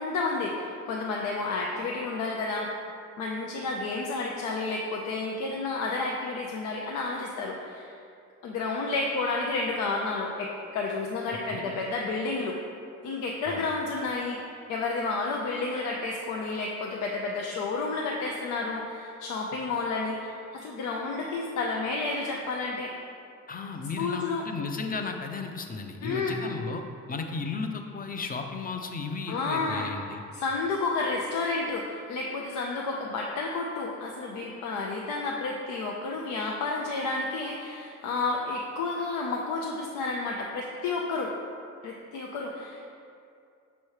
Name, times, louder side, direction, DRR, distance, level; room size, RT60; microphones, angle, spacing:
voice 1, 0.0-2.7 3.2-8.0 8.4-12.6 13.0-14.4 14.7-22.9 24.0-24.4 26.0-26.4 29.3-41.3 41.8-42.8, left 3 dB, 85° left, -1 dB, 0.6 m, -31 dB
voice 2, 23.5-26.8 27.1-30.2, left 4 dB, 30° left, 4 dB, 0.6 m, -34 dB
6.4 x 3.1 x 4.8 m, 2.4 s
cardioid pair, 90°, 30 cm